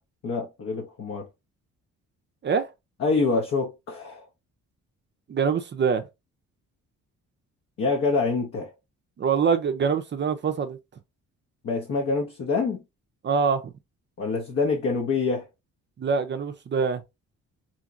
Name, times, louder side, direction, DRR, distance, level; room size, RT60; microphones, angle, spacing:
voice 1, 0.2-1.3 3.0-4.3 7.8-8.7 11.6-12.8 14.2-15.5, left 4 dB, 50° left, 0.8 m, -26 dB
voice 2, 5.3-6.0 9.2-10.8 13.2-13.7 16.0-17.0, right 6 dB, 40° right, 0.5 m, -24 dB
2.8 x 2.8 x 2.4 m
cardioid pair, 90°, 30 cm